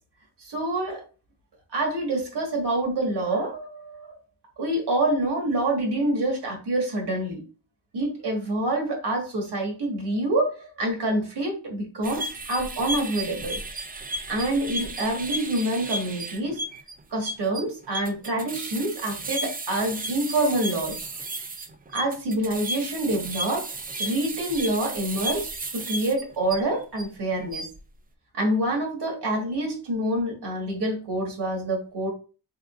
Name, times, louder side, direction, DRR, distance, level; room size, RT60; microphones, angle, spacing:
voice 1, 0.4-1.0 1.7-4.2 4.6-7.4 7.9-13.6 14.3-16.6 17.1-21.1 21.9-23.7 24.0-27.6 28.3-32.1, right 1 dB, 70° right, 0 dB, 1.5 m, -27 dB
sound 1, 12.0-27.0 27.4-27.8, right 1 dB, 20° right, 0.4 m, -34 dB
3.7 x 3.4 x 2.4 m, 0.35 s
cardioid pair, 85°, 41 cm